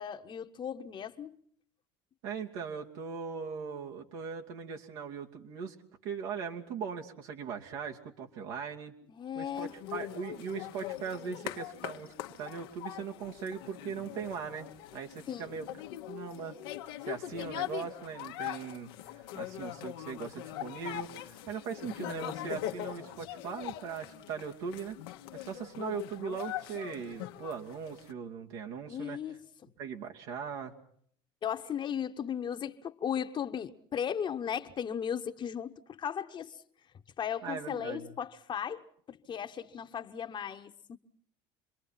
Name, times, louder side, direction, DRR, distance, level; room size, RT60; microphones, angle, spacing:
voice 1, 0.0-1.4 9.1-9.7 15.3-15.6 28.9-29.7 31.4-36.6 37.2-41.0, left 8 dB, 40° left, 1.3 m, -36 dB
voice 2, 2.2-5.7 6.0-9.0 9.3-15.7 16.1-16.6 17.0-25.0 25.3-29.2 29.8-30.7 37.4-38.1, right 6 dB, 80° right, 2.8 m, -40 dB
sound 1, 9.5-28.1, left 13 dB, 85° left, 1.3 m, -42 dB
27.5 x 22.5 x 5.9 m
supercardioid pair, 95°, 13 cm